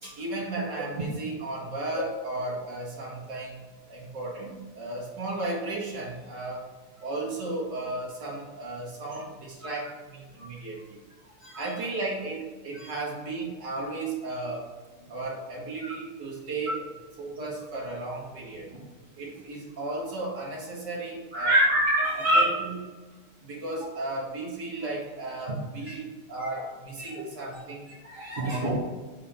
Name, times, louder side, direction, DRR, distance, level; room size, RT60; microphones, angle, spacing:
voice 1, 0.2-6.7 7.0-11.0 11.6-14.7 15.1-16.9 17.2-18.7 19.2-21.6 22.3-22.8 23.4-27.9 28.4-28.8, right 2 dB, 55° right, -4 dB, 2.7 m, -35 dB
voice 2, 21.3-22.6 25.9-26.0 27.0-27.2 27.5-27.6 28.0-28.8, right 1 dB, 40° right, -5 dB, 2.2 m, -25 dB
9.3 x 4.3 x 4.3 m, 1.3 s
omnidirectional pair, 2.4 m